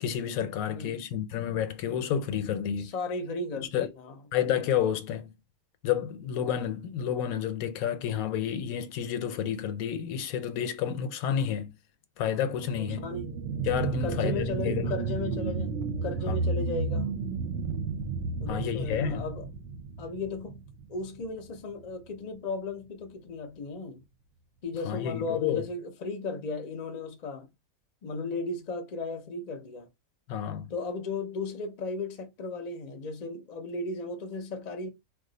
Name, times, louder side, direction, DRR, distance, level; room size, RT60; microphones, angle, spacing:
voice 1, 0.0-2.9 3.6-3.9 4.3-5.3 5.8-11.7 12.2-13.0 13.6-14.9 16.3-16.4 18.5-19.2 24.9-25.7 30.3-30.7, left 9 dB, 85° left, 1.0 m, -30 dB
voice 2, 0.6-1.0 2.8-4.2 12.7-13.4 14.0-17.2 18.4-19.5 20.0-20.6 20.9-24.0 24.6-27.5 28.0-29.9 30.7-34.9, left 3 dB, 50° left, 0.5 m, -35 dB
sound 1, 12.4-21.5 21.9-22.0, right 4 dB, 70° right, 0.9 m, -32 dB
2.4 x 2.3 x 3.8 m
omnidirectional pair, 1.4 m